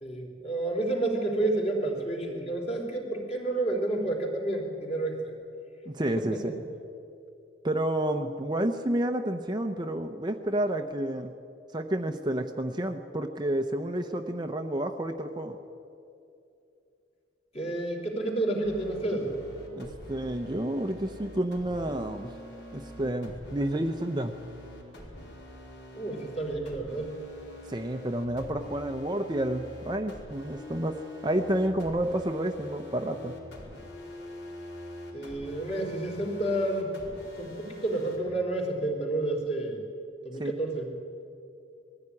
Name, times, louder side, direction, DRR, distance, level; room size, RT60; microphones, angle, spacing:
voice 1, 0.0-5.3 6.2-6.4 17.5-19.3 25.9-27.1 35.1-36.9 37.4-39.8 40.2-40.9, right 2 dB, 30° left, 0 dB, 3.8 m, -30 dB
voice 2, 5.9-6.4 7.6-11.3 11.7-15.6 19.7-22.3 22.7-24.3 27.7-33.4 40.4-40.5, right 1 dB, 25° right, 6 dB, 0.7 m, -30 dB
sound 1, 18.6-38.2, left 1 dB, 65° left, 4.7 m, -45 dB
21.0 x 15.0 x 9.7 m, 2.7 s
head